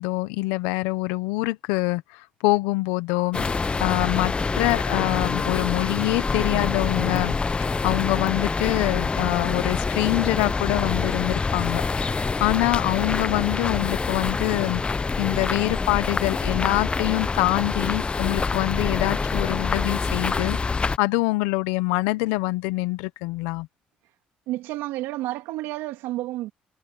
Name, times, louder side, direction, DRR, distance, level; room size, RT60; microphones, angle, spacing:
voice 1, 0.0-3.4 3.8-11.8 12.1-23.7, left 21 dB, 90° left, 0.9 m, -25 dB
sound 1, 3.3-21.0, left 4 dB, 25° left, 0.8 m, -26 dB
voice 2, 24.5-26.5, right 16 dB, 80° right, 2.9 m, -30 dB
supercardioid pair, 70°, 4 cm